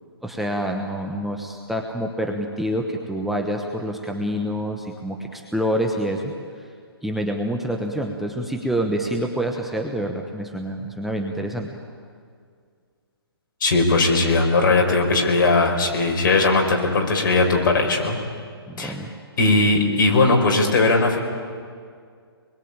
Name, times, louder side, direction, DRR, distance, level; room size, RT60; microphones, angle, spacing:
voice 1, 0.2-6.7 7.0-11.8 18.7-19.1, equal, ahead, 1 dB, 1.0 m, -27 dB
voice 2, 13.6-18.2 18.8-19.0 19.4-21.2, left 3 dB, 50° left, 2 dB, 5.4 m, -19 dB
26.0 x 21.5 x 8.8 m, 2.1 s
hypercardioid pair, 155°, 14 cm